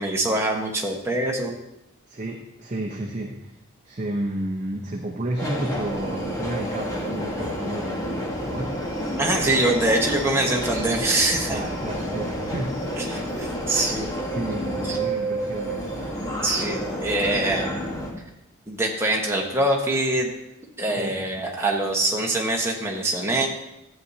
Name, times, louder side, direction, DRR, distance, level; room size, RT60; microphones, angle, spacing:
voice 1, 0.0-1.5 9.2-11.6 13.0-14.1 14.8-15.0 16.4-17.7 18.7-20.3 20.8-23.5, right 1 dB, 10° right, -1 dB, 1.2 m, -24 dB
voice 2, 2.1-3.5 3.8-8.8 11.5-13.0 13.2-13.4 14.3-16.1 21.0-21.3, right 1 dB, 35° right, 0 dB, 0.7 m, -31 dB
Subway metro underground, 5.4-18.1, equal, 15° left, 1.3 m, -29 dB
12.5 x 8.1 x 2.8 m, 0.86 s
head